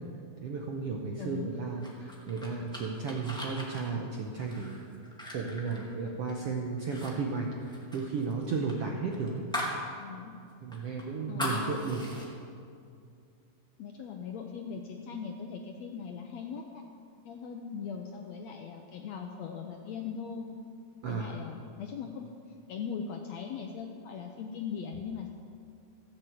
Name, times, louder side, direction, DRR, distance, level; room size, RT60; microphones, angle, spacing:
voice 1, 0.4-4.8 5.3-9.5 10.6-12.0 21.0-21.4, right 4 dB, 70° right, 0 dB, 1.4 m, -34 dB
voice 2, 1.2-1.5 9.9-10.3 11.3-12.0 13.8-16.8 17.2-20.5 21.1-22.3 22.7-25.3, left 6 dB, 75° left, 3 dB, 1.6 m, -40 dB
sound 1, 1.8-6.4 6.8-7.1 7.4-9.8 10.2-10.3 10.7-12.3, left 1 dB, ahead, 1.2 m, -39 dB
14.5 x 7.7 x 7.8 m, 2.4 s
omnidirectional pair, 3.8 m